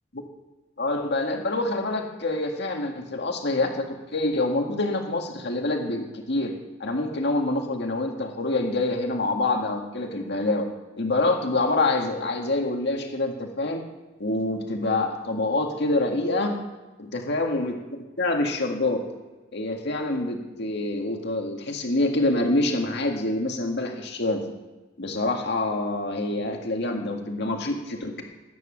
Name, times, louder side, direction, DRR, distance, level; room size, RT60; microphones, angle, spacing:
voice 1, 0.8-6.5 6.8-10.7 11.0-13.8 14.2-16.5 17.1-19.0 19.5-24.4 25.0-28.2, left 2 dB, 60° left, 3 dB, 1.9 m, -26 dB
18.5 x 9.5 x 6.5 m, 1.2 s
head